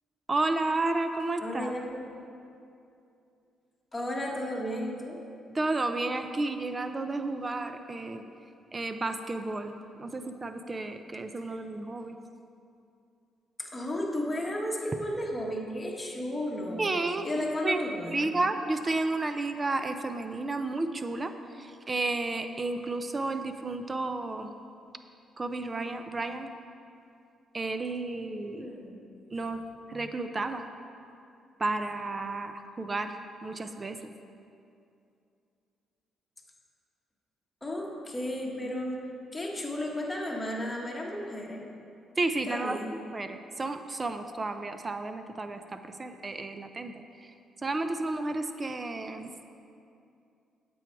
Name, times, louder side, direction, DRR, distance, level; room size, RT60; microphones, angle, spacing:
voice 1, 0.3-1.7 5.5-8.3 8.7-9.7 10.0-12.2 16.8-17.8 18.1-24.5 25.4-26.5 27.5-28.7 29.3-29.6 29.9-30.7 31.6-34.0 42.2-42.8 43.1-46.9 47.6-49.3, right 2 dB, 25° right, 8 dB, 0.6 m, -32 dB
voice 2, 1.4-2.0 3.9-5.2 11.5-11.6 13.6-17.0 17.2-18.3 28.5-29.0 37.6-39.1 39.3-41.7 42.5-43.0, left 1 dB, 15° left, -2 dB, 1.5 m, -34 dB
9.1 x 7.1 x 4.7 m, 2.6 s
cardioid pair, 90°, 0 cm